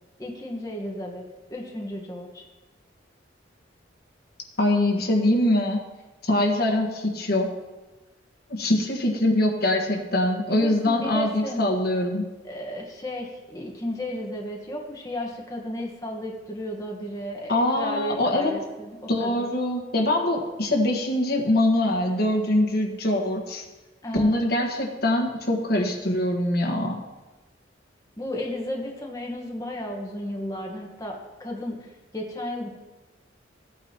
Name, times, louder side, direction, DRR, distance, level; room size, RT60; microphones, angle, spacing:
voice 1, 0.2-1.2 1.5-2.4 10.5-11.6 12.4-19.4 24.0-24.4 28.2-32.7, left 1 dB, 20° left, -1 dB, 1.3 m, -34 dB
voice 2, 4.6-5.8 6.2-7.5 8.5-12.2 17.5-18.5 19.1-23.6 24.1-27.0, left 1 dB, 55° left, 0 dB, 1.5 m, -23 dB
16.0 x 8.7 x 2.9 m, 1.2 s
head